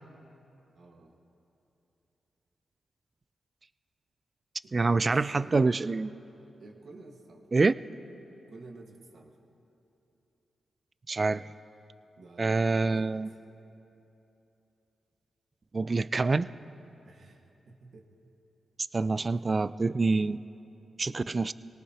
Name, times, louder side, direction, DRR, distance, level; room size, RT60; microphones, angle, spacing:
voice 1, 0.7-1.1 4.6-5.6 6.6-7.5 8.5-9.4 12.2-13.4 17.0-18.2 19.2-19.3, right 2 dB, 70° right, 2 dB, 1.6 m, -50 dB
voice 2, 4.7-6.1 7.5-7.7 11.1-11.5 12.4-13.3 15.7-16.5 18.9-20.4 21.0-21.5, right 3 dB, 40° right, 16 dB, 0.3 m, -26 dB
24.5 x 18.5 x 2.9 m, 2.9 s
cardioid pair, 55°, 0 cm